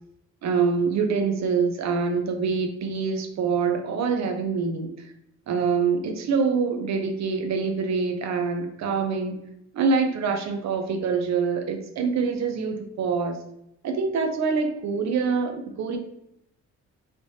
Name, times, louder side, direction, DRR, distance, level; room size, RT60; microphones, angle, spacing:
voice 1, 0.4-4.9 5.5-9.4 9.7-13.4 13.8-16.0, right 5 dB, 65° right, 6 dB, 0.7 m, -25 dB
3.3 x 3.0 x 2.8 m, 0.79 s
cardioid pair, 90°, 30 cm